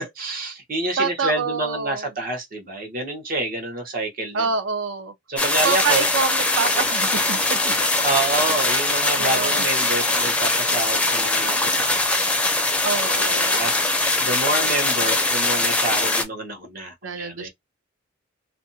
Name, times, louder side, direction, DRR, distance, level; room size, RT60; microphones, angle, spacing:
voice 1, 0.0-4.5 5.3-6.1 8.0-12.4 13.0-13.7 14.2-17.5, right 2 dB, 45° right, 1.0 m, -28 dB
voice 2, 1.0-2.1 4.3-5.1 5.6-7.9 9.2-9.6 12.8-13.6 17.0-17.5, right 5 dB, 70° right, 0.6 m, -26 dB
sound 1, 5.4-16.2, left 2 dB, 5° left, 0.5 m, -21 dB
2.5 x 2.2 x 2.6 m
head